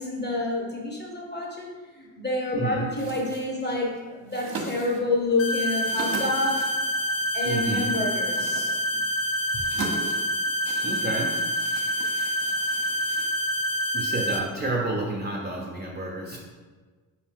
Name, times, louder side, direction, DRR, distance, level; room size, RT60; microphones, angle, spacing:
voice 1, 0.0-6.7 7.3-9.0 9.5-9.6, left 2 dB, 20° left, -1 dB, 1.2 m, -28 dB
voice 2, 2.5-2.8 7.4-8.0 10.8-11.5 13.9-16.4, right 2 dB, 20° right, -3 dB, 0.7 m, -30 dB
sound 1, 2.9-13.8, right 3 dB, 45° right, 0.9 m, -40 dB
sound 2, 5.4-14.4, equal, 65° left, 0.8 m, -27 dB
4.3 x 2.7 x 3.5 m, 1.4 s
hypercardioid pair, 50°, 49 cm